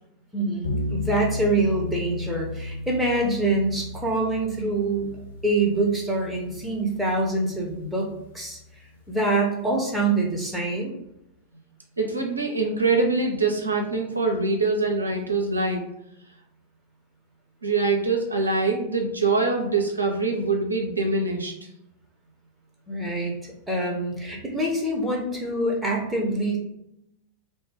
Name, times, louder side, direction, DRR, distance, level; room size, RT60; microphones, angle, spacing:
voice 1, 0.3-5.1 5.4-8.1 8.3-8.6 9.1-10.9 22.9-23.3 23.7-26.6, right 2 dB, ahead, -2 dB, 0.8 m, -25 dB
sound 1, 0.6-8.8, left 2 dB, 65° left, 0.6 m, -35 dB
voice 2, 12.0-15.9 17.6-21.5, right 3 dB, 80° right, 1 dB, 0.5 m, -24 dB
2.7 x 2.2 x 3.4 m, 0.80 s
figure-of-eight pair, 90°, 0 cm